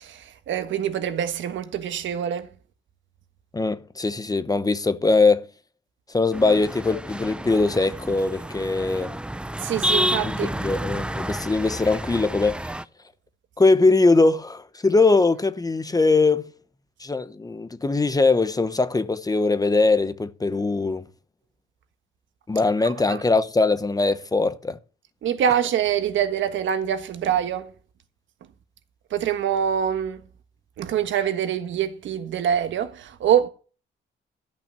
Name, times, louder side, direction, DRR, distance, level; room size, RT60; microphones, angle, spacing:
voice 1, 0.0-2.5 9.6-10.5 23.1-23.2 25.2-27.7 29.1-30.2 30.8-33.5, right 9 dB, 75° right, 1.4 m, -25 dB
voice 2, 3.5-5.5 6.1-9.1 10.4-12.6 13.6-16.5 17.0-21.0 22.5-24.8, left 3 dB, 20° left, 0.9 m, -21 dB
sound 1, 6.3-12.8, right 1 dB, 5° right, 0.6 m, -29 dB
13.5 x 5.9 x 6.7 m
cardioid pair, 90°, 20 cm